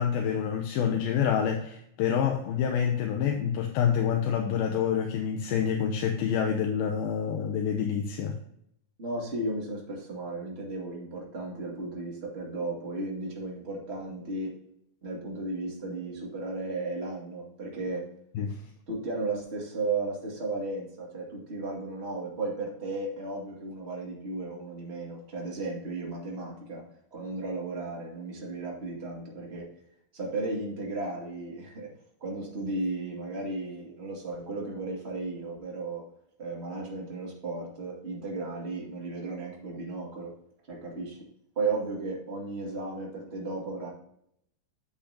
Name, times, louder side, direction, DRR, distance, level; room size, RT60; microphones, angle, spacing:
voice 1, 0.0-8.4 18.4-18.6, left 8 dB, 80° left, 3 dB, 2.6 m, -27 dB
voice 2, 9.0-14.5 15.0-18.1 18.9-26.8 27.1-29.7 30.1-31.9 32.2-36.0 36.4-40.3 40.7-41.2 41.5-43.9, right 3 dB, 25° right, -2 dB, 1.6 m, -34 dB
8.4 x 8.1 x 2.8 m, 0.74 s
omnidirectional pair, 4.3 m